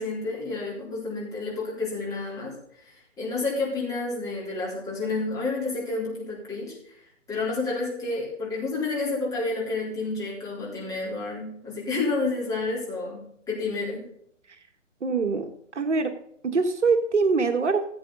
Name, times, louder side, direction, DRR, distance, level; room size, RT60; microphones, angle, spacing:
voice 1, 0.0-6.7 7.3-14.1, left 3 dB, 10° left, -6 dB, 3.9 m, -30 dB
voice 2, 15.0-16.1 16.4-17.9, right 4 dB, 65° right, 7 dB, 1.6 m, -24 dB
16.0 x 8.0 x 4.0 m, 0.70 s
figure-of-eight pair, 150°, 37 cm